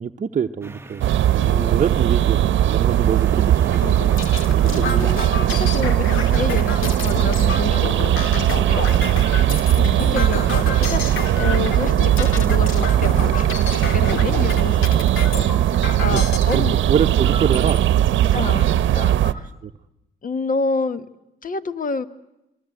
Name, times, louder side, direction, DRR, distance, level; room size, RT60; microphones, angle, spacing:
voice 1, 0.0-5.2 9.0-9.6 16.1-16.2 16.5-18.4 19.6-19.7, right 7 dB, 40° right, 5 dB, 0.9 m, -26 dB
sound 1, 0.6-11.4, right 2 dB, 10° right, 1.1 m, -41 dB
sound 2, 1.0-19.3, right 11 dB, 75° right, 0.9 m, -18 dB
voice 2, 1.3-1.7 4.7-7.9 8.3-9.1 9.5-16.7 18.3-19.5 20.2-21.1 21.4-22.0, left 4 dB, 45° left, 12 dB, 1.4 m, -29 dB
sound 3, 3.7-16.6 17.2-17.8 18.3-18.4 18.7-19.4, left 5 dB, 80° left, 2.5 m, -30 dB
28.0 x 22.0 x 7.9 m, 0.91 s
cardioid pair, 90°, 20 cm